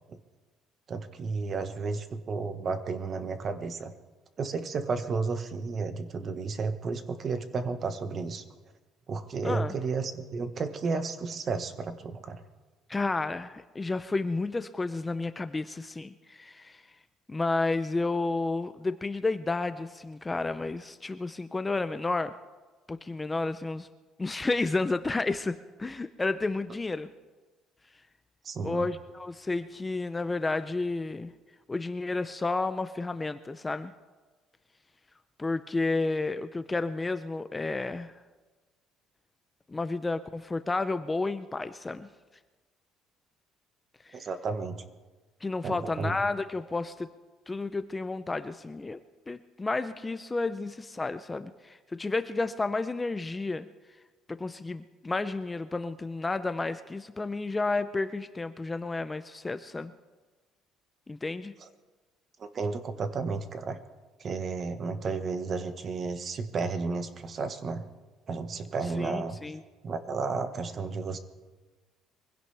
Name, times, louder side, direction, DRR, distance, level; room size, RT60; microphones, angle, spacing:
voice 1, 0.9-3.9 4.4-8.4 9.1-12.4 28.4-28.9 44.1-44.8 45.6-46.2 62.4-63.8 64.2-67.8 68.3-69.4 69.8-71.2, right 4 dB, 35° right, 10 dB, 1.0 m, -32 dB
voice 2, 9.4-9.7 12.9-16.8 17.3-22.3 22.9-23.9 24.2-27.1 28.6-31.3 31.7-33.9 35.4-38.1 39.7-42.1 44.0-44.3 45.4-47.1 47.5-49.0 49.3-53.7 54.3-59.9 61.1-61.5 69.0-69.6, left 3 dB, 15° left, 11 dB, 0.4 m, -31 dB
23.5 x 16.0 x 3.4 m, 1.3 s
cardioid pair, 150°, 0 cm